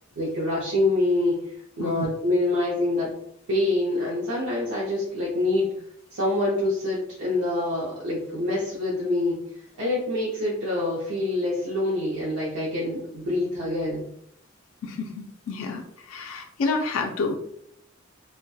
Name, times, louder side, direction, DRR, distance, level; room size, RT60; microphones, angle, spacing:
voice 1, 0.2-1.4 1.8-3.1 3.5-5.7 6.1-9.4 9.8-14.0, left 2 dB, 80° right, -5 dB, 0.6 m, -25 dB
voice 2, 14.8-17.3, left 3 dB, 85° left, 3 dB, 0.3 m, -29 dB
2.6 x 2.1 x 2.2 m, 0.71 s
head